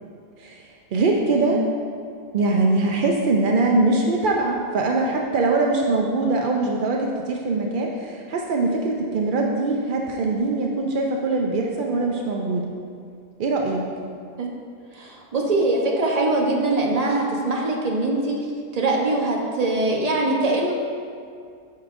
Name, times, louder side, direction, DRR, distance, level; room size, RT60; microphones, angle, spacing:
voice 1, 0.9-1.6 2.3-12.7 13.4-13.8, right 3 dB, 75° right, 0 dB, 0.4 m, -22 dB
voice 2, 14.9-18.4 18.7-20.7, right 2 dB, 35° right, -1 dB, 0.7 m, -22 dB
8.3 x 6.4 x 2.5 m, 2.3 s
omnidirectional pair, 1.5 m